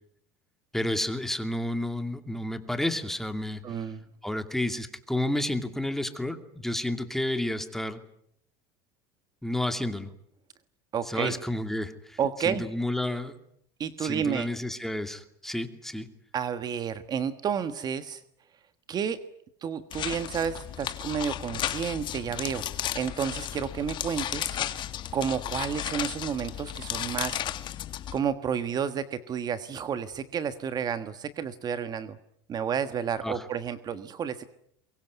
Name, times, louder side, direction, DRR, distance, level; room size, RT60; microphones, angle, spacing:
voice 1, 0.7-3.9 4.2-8.0 9.4-10.1 11.1-12.2 12.4-13.3 14.0-16.1 33.2-33.4, left 1 dB, 5° left, 8 dB, 2.4 m, -31 dB
voice 2, 3.6-4.0 10.9-11.3 12.2-12.6 13.8-14.5 16.3-18.2 18.9-19.2 19.6-22.6 22.9-24.6 25.1-27.4 28.1-32.2 32.5-34.5, right 7 dB, 35° right, 12 dB, 1.4 m, -31 dB
sound 1, 19.9-28.2, left 11 dB, 40° left, 1.9 m, -34 dB
23.0 x 23.0 x 9.5 m, 0.71 s
supercardioid pair, 125°, 12 cm